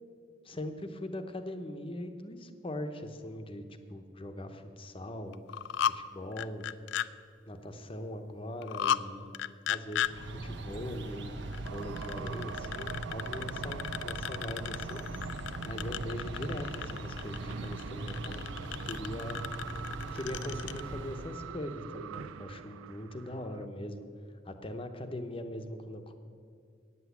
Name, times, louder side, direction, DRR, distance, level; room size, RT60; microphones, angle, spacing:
voice 1, 0.4-5.5 5.9-6.7 7.5-9.4 9.7-18.4 18.8-19.4 20.1-24.1 24.4-26.1, left 1 dB, 25° left, 7 dB, 0.7 m, -41 dB
sound 1, 5.3-6.0 6.3-7.1 8.6-9.0 9.3-10.1 11.5-20.8, left 10 dB, 65° left, 0.3 m, -35 dB
sound 2, 10.0-21.4, right 2 dB, 60° right, 0.9 m, -41 dB
sound 3, 11.7-23.6, right 7 dB, 90° right, 0.3 m, -45 dB
9.1 x 8.0 x 8.2 m, 2.3 s
head